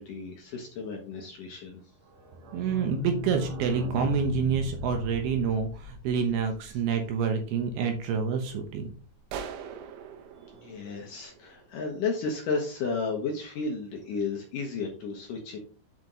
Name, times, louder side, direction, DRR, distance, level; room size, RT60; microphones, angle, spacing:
voice 1, 0.0-1.8 10.5-15.6, left 4 dB, 65° left, 1 dB, 2.1 m, -33 dB
sound 1, 2.1-7.6 7.9-8.0 8.2-8.3 8.6-8.7, left 2 dB, 50° right, 3.2 m, -39 dB
voice 2, 2.5-8.9, right 6 dB, 70° right, 4 dB, 2.7 m, -28 dB
sound 2, 9.3-11.9, right 7 dB, 90° right, 3.3 m, -42 dB
7.9 x 5.2 x 3.9 m, 0.39 s
omnidirectional pair, 5.2 m